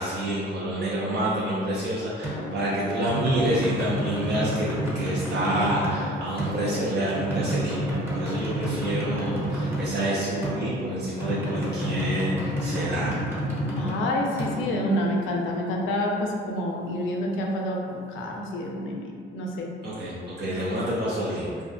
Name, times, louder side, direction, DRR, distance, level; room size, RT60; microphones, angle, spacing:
voice 1, 0.0-13.2 19.8-21.5, right 1 dB, 60° right, -7 dB, 0.5 m, -28 dB
sound 1, 2.2-15.8, right 1 dB, 10° right, 0.7 m, -30 dB
voice 2, 13.7-19.1 19.3-19.7, left 1 dB, 85° left, 0 dB, 0.4 m, -28 dB
2.5 x 2.2 x 2.5 m, 2.2 s
cardioid pair, 90°, 20 cm